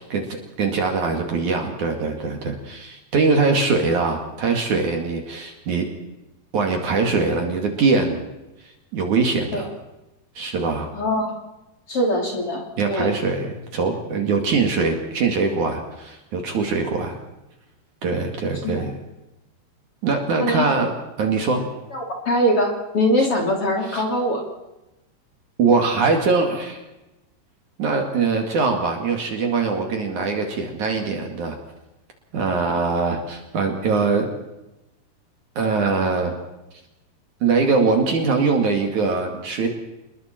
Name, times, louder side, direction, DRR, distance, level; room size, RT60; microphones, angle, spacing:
voice 1, 0.0-5.9 6.5-8.2 8.9-9.7 10.4-10.9 12.8-17.2 18.0-18.9 20.0-21.7 23.9-24.0 25.6-26.8 27.8-31.6 32.3-34.3 35.6-36.3 37.4-39.7, right 4 dB, 50° right, 3 dB, 3.3 m, -22 dB
voice 2, 10.9-11.3 11.9-13.1 18.6-18.8 20.4-20.7 21.9-24.4 32.7-32.8, equal, 35° left, 1 dB, 3.5 m, -22 dB
27.5 x 21.5 x 4.4 m, 0.98 s
omnidirectional pair, 4.8 m